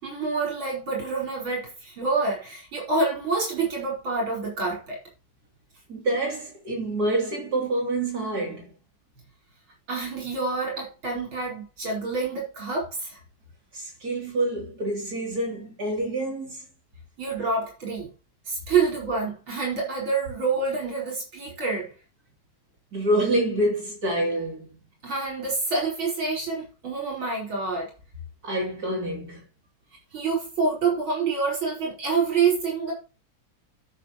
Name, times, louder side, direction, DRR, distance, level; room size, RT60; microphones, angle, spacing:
voice 1, 0.0-5.0 9.9-13.2 17.2-18.1 18.5-21.9 25.0-27.9 30.1-32.9, right 4 dB, 75° right, 6.0 m, -27 dB
voice 2, 5.9-8.7 13.7-16.7 22.9-24.7 28.4-29.4, right 1 dB, 50° right, 3.7 m, -27 dB
13.0 x 6.9 x 3.1 m
omnidirectional pair, 2.2 m